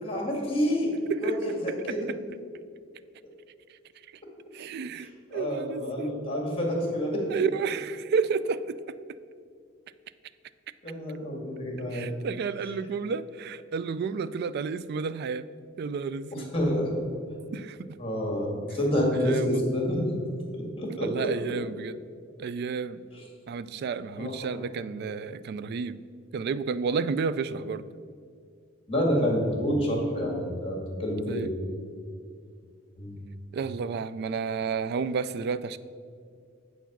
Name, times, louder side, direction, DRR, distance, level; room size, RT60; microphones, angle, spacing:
voice 1, 0.0-0.9 1.2-2.1 5.0-7.4 10.8-12.1 16.3-16.9 18.0-20.0 20.5-21.1 23.1-23.2 24.2-24.3 28.9-31.5 33.0-33.2, equal, 30° left, 0 dB, 1.8 m, -28 dB
voice 2, 4.5-6.1 7.3-9.0 11.9-15.5 15.8-16.5 17.5-17.8 19.1-19.6 20.9-22.0 22.4-23.0 23.5-26.0 26.3-27.8 31.3-31.5 33.5-35.8, right 5 dB, 55° right, 16 dB, 0.3 m, -31 dB
8.0 x 4.6 x 5.9 m, 2.3 s
head